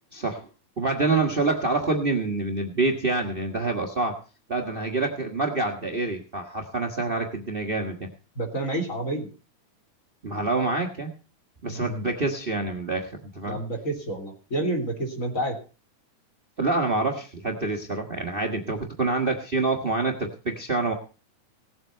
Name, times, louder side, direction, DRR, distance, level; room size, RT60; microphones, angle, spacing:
voice 1, 0.1-0.5 0.8-4.2 4.5-8.1 10.2-11.1 11.6-13.6 16.6-20.9, right 3 dB, 60° right, 4 dB, 0.5 m, -26 dB
voice 2, 8.3-9.3 11.7-12.1 13.5-15.5, right 1 dB, 25° left, 3 dB, 3.0 m, -29 dB
18.0 x 7.8 x 5.5 m, 0.36 s
omnidirectional pair, 3.5 m